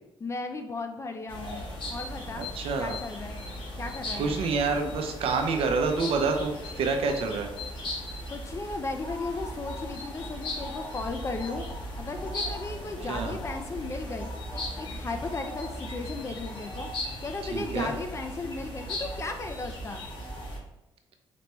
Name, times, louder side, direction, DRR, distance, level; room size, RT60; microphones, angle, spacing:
voice 1, 0.2-2.5 2.8-3.4 3.8-4.4 8.3-11.7 12.0-20.1, left 3 dB, 30° left, 5 dB, 0.4 m, -36 dB
sound 1, 1.3-20.6, left 1 dB, 55° left, 1.3 m, -37 dB
voice 2, 2.4-3.0 4.2-7.5 13.1-13.3 17.5-17.9, right 4 dB, 80° right, 4 dB, 0.6 m, -27 dB
4.2 x 3.3 x 3.0 m, 0.97 s
cardioid pair, 125°, 10 cm